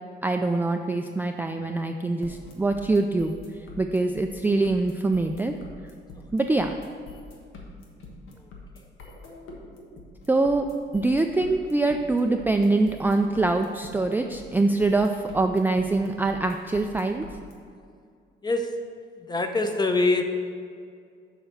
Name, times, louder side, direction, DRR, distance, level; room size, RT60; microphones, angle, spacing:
voice 1, 0.2-3.3 3.8-5.6 6.3-6.7 10.3-10.7 10.9-17.3, right 2 dB, 10° right, 4 dB, 0.3 m, -24 dB
sound 1, 2.2-17.5, left 3 dB, 85° left, 1.3 m, -45 dB
voice 2, 18.4-18.7 19.2-20.2, left 2 dB, 20° left, 6 dB, 0.8 m, -24 dB
6.9 x 4.5 x 6.6 m, 2.2 s
cardioid pair, 90°, 20 cm